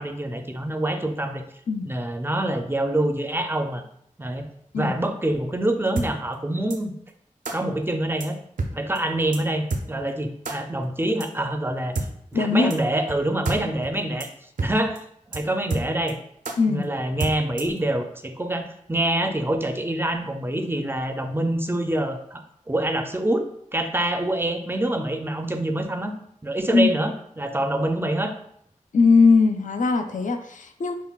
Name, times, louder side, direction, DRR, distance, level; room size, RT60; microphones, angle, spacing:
voice 1, 0.0-1.4 1.8-3.8 4.2-4.5 4.7-6.9 7.5-8.4 8.7-11.9 12.3-14.3 14.6-16.2 16.7-23.5 23.7-26.1 26.4-28.3, right 1 dB, 15° right, 6 dB, 0.4 m, -26 dB
sound 1, 6.0-6.1 6.7-6.8 7.4-7.6 8.2-8.3 8.6-8.7 9.0-9.1 9.3-9.4 9.7-9.8 10.4-10.6 11.2-11.3 11.9-12.1 12.7-12.8 13.1-13.2 13.4-13.6 13.8-13.9 14.2-14.3 14.6-14.7 15.0-15.1 15.3-15.4 15.7-16.1 16.4-16.6 17.2-17.8, right 3 dB, 75° right, 0.5 m, -28 dB
voice 2, 12.3-12.7 16.6-16.9 26.7-26.9 28.9-30.9, left 4 dB, 70° left, 7 dB, 0.4 m, -19 dB
5.5 x 2.2 x 2.3 m, 0.69 s
wide cardioid pair, 45°, 13 cm